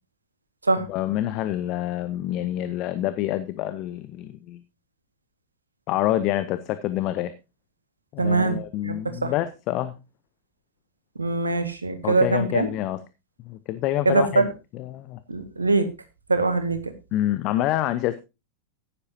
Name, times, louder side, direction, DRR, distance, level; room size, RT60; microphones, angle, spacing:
voice 1, 0.9-4.6 5.9-7.3 8.1-10.0 12.0-13.0 13.4-15.2 17.1-18.2, left 13 dB, 40° left, 12 dB, 0.8 m, -27 dB
voice 2, 8.2-8.6 8.8-9.3 11.2-12.7 14.1-14.5 15.3-15.9 16.3-16.9, right 3 dB, 80° right, 9 dB, 1.8 m, -22 dB
14.5 x 10.0 x 2.8 m, 0.26 s
figure-of-eight pair, 90°, 0 cm